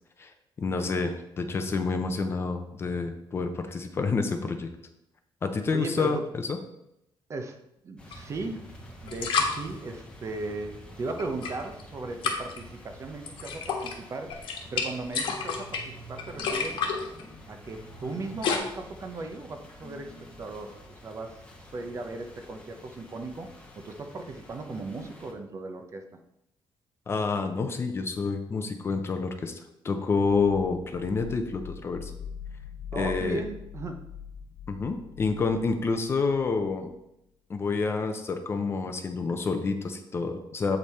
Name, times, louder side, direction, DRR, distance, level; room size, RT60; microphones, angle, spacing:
voice 1, 0.2-4.7 5.4-6.2 6.5-6.6 27.1-32.1 32.9-33.4 34.7-36.9 37.5-40.8, left 4 dB, 25° left, 7 dB, 0.6 m, -28 dB
voice 2, 5.7-6.2 7.3-7.6 7.8-8.6 9.0-16.8 17.5-21.4 21.7-26.1 32.9-34.0, right 3 dB, 35° right, 6 dB, 0.7 m, -37 dB
sound 1, 8.0-25.3, left 1 dB, 10° left, 1.0 m, -48 dB
sound 2, 8.1-8.2 9.0-9.6 11.2-11.8 12.2-12.6 13.3-13.9 14.3-18.6, left 5 dB, 70° left, 1.3 m, -31 dB
sound 3, 30.2-36.9, left 7 dB, 85° left, 0.7 m, -43 dB
7.9 x 5.2 x 4.3 m, 0.82 s
cardioid pair, 175°, 9 cm